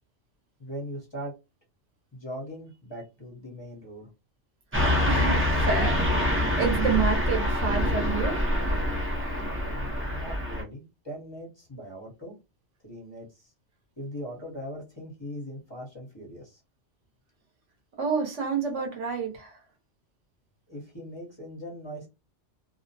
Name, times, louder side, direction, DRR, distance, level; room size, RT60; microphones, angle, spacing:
voice 1, 0.6-1.3 2.1-4.1 9.7-12.3 12.8-13.5 14.0-16.6 20.7-22.1, equal, 25° left, 0.8 m, -40 dB
Car passing by / Truck, 4.7-10.6, left 1 dB, 15° right, 0.4 m, -25 dB
voice 2, 5.1-8.5 18.0-19.6, right 5 dB, 85° right, 1.2 m, -29 dB
2.6 x 2.0 x 2.7 m
omnidirectional pair, 1.2 m